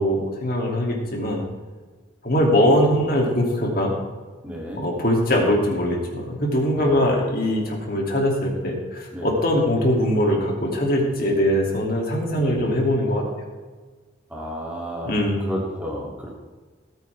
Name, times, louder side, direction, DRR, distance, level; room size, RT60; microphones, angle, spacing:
voice 1, 0.0-1.4 2.2-3.9 4.8-13.2 15.0-15.5, equal, 50° left, -1 dB, 2.8 m, -21 dB
voice 2, 4.4-4.9 6.7-7.1 9.1-9.4 12.4-12.7 14.3-16.3, equal, 5° right, -3 dB, 2.8 m, -32 dB
18.0 x 9.1 x 3.5 m, 1.4 s
head